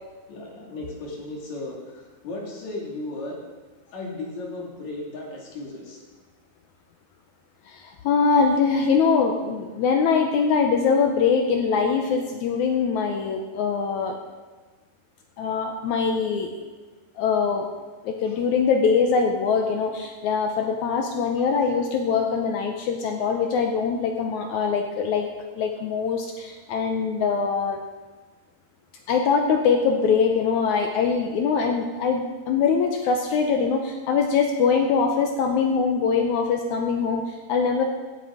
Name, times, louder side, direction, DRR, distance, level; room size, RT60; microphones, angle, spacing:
voice 1, 0.3-3.4 3.9-6.0 18.3-18.4, left 2 dB, 50° left, -2 dB, 3.3 m, -35 dB
voice 2, 7.7-14.2 15.4-16.5 17.2-17.7 18.0-25.3 25.5-27.8 29.1-37.8, left 5 dB, 80° left, 4 dB, 1.7 m, -23 dB
16.0 x 8.0 x 4.9 m, 1.3 s
omnidirectional pair, 4.4 m